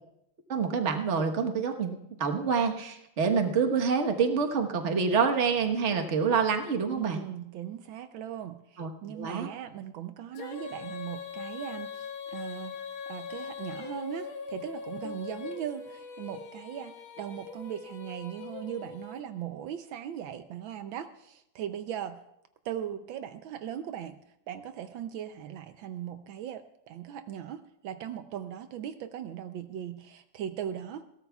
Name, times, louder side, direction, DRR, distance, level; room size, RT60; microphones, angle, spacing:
voice 1, 0.5-7.2 8.8-9.5, right 5 dB, 40° right, 4 dB, 1.3 m, -27 dB
voice 2, 6.9-8.5 9.0-11.9 12.3-12.7 13.1-14.2 14.5-15.8 16.2-16.9 17.2-21.1 21.6-22.1 22.7-24.1 24.5-26.6 26.9-27.6 27.8-30.0 30.4-31.0, right 10 dB, 80° right, 9 dB, 1.4 m, -38 dB
Female singing, 10.3-19.5, left 6 dB, 80° left, 2.0 m, -41 dB
21.0 x 17.0 x 2.3 m, 0.81 s
omnidirectional pair, 2.2 m